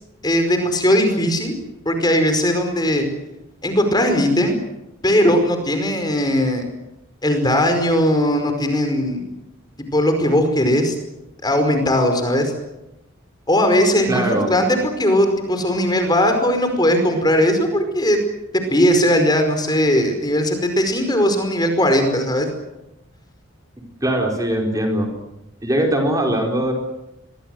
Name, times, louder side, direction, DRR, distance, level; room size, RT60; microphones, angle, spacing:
voice 1, 0.2-1.5 1.8-3.1 3.6-4.5 5.0-6.6 7.2-9.2 9.9-10.9 11.4-12.5 13.5-18.2 18.7-22.5, equal, 20° left, 6 dB, 5.1 m, -18 dB
voice 2, 14.1-14.5 24.0-25.1 25.6-26.7, right 1 dB, 15° right, 2 dB, 4.5 m, -20 dB
27.5 x 22.5 x 7.9 m, 0.91 s
head